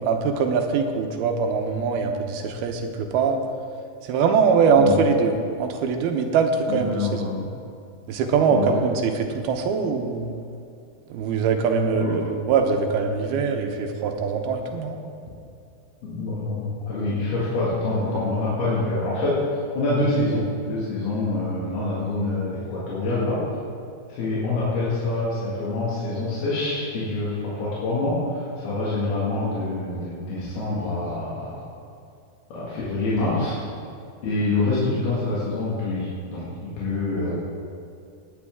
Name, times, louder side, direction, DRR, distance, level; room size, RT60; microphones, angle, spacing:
voice 1, 0.0-3.4 4.1-5.3 5.6-7.2 8.1-10.3 11.1-15.0, right 5 dB, 85° right, 4 dB, 2.8 m, -22 dB
voice 2, 6.7-7.5 8.5-8.7 11.9-12.2 16.0-23.4 24.1-31.5 32.5-33.6 34.2-37.3, left 2 dB, 90° left, -8 dB, 4.0 m, -26 dB
18.0 x 10.0 x 3.6 m, 2.5 s
omnidirectional pair, 4.4 m